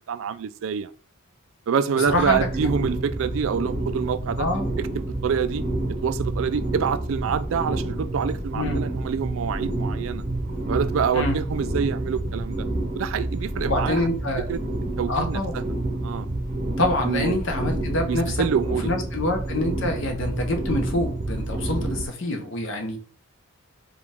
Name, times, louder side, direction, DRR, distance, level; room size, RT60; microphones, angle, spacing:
voice 1, 0.1-0.9 1.7-4.5 4.8-5.6 6.0-10.2 10.7-12.7 12.9-14.0 14.5-14.6 15.0-15.6 16.0-16.3 17.0-17.4 18.1-18.9, right 7 dB, 60° right, 0.3 m, -26 dB
voice 2, 2.1-2.5 4.4-4.7 8.5-8.8 11.1-11.4 13.6-14.5 15.1-15.5 16.8-18.4 18.8-23.0, left 2 dB, 55° left, 0.9 m, -26 dB
sound 1, 2.1-22.1, right 1 dB, 35° right, 0.7 m, -29 dB
4.8 x 2.4 x 3.4 m
head